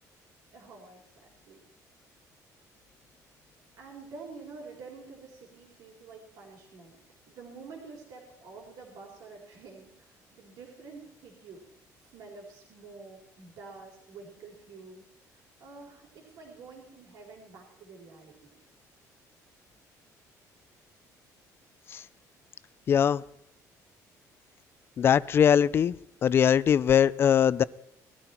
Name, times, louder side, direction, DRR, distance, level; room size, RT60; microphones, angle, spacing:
voice 1, 0.5-1.6 3.8-7.0 7.3-11.6 12.0-18.5, right 4 dB, 65° right, 0 dB, 4.2 m, -48 dB
voice 2, 22.9-23.2 25.0-25.9 26.2-27.6, left 8 dB, 35° left, 19 dB, 0.5 m, -21 dB
20.0 x 13.0 x 4.4 m, 0.76 s
cardioid pair, 160°, 7 cm